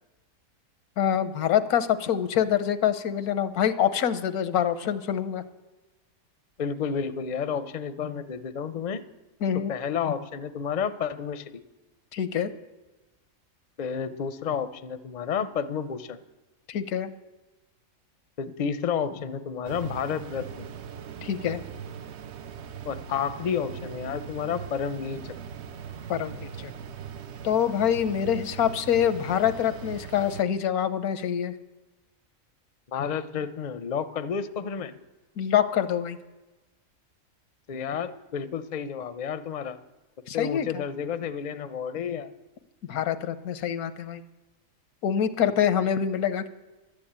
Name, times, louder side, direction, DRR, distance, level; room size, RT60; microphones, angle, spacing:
voice 1, 1.0-5.4 9.4-9.7 12.1-12.5 16.7-17.1 21.2-21.6 26.1-26.7 27.4-31.5 35.4-36.2 40.3-40.8 42.9-44.2 45.0-46.5, left 9 dB, 85° left, 13 dB, 1.3 m, -25 dB
voice 2, 6.6-9.0 9.7-11.6 13.8-16.2 18.4-20.7 22.9-25.2 32.9-34.9 37.7-39.8 40.3-42.3 45.4-45.5, left 7 dB, 40° left, 12 dB, 0.6 m, -31 dB
sound 1, 19.6-30.4, right 7 dB, 60° right, 0.8 m, -40 dB
12.0 x 9.8 x 8.7 m, 1.1 s
omnidirectional pair, 1.5 m